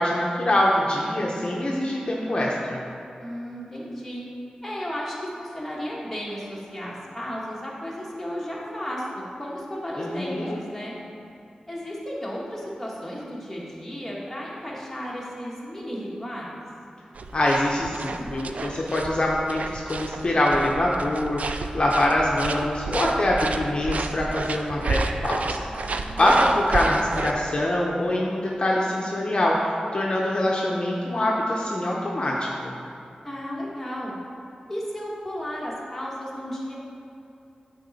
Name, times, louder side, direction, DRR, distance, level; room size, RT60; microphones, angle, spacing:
voice 1, 0.0-2.8 10.0-10.6 17.3-32.7, left 1 dB, 40° left, -3 dB, 0.7 m, -24 dB
voice 2, 3.2-4.2 4.6-11.0 11.7-16.6 25.8-26.2 33.2-34.2 34.7-36.7, equal, 5° left, -6 dB, 1.4 m, -34 dB
sound 1, 17.1-27.3, right 3 dB, 60° right, 0.3 m, -31 dB
9.6 x 4.2 x 4.1 m, 2.7 s
wide cardioid pair, 125°, 3 cm